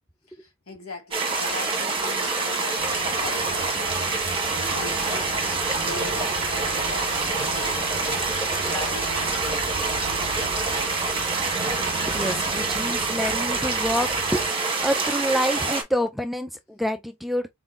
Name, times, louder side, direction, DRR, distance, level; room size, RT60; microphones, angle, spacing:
voice 1, 0.3-11.3, left 1 dB, 80° left, 1.6 m, -40 dB
sound 1, 1.1-15.8, right 3 dB, 25° right, 1.3 m, -26 dB
sound 2, 2.6-9.9, left 4 dB, 40° left, 0.9 m, -42 dB
sound 3, 2.8-14.5, right 3 dB, 55° right, 0.6 m, -38 dB
voice 2, 11.8-17.5, equal, ahead, 0.3 m, -28 dB
4.0 x 3.9 x 2.4 m
head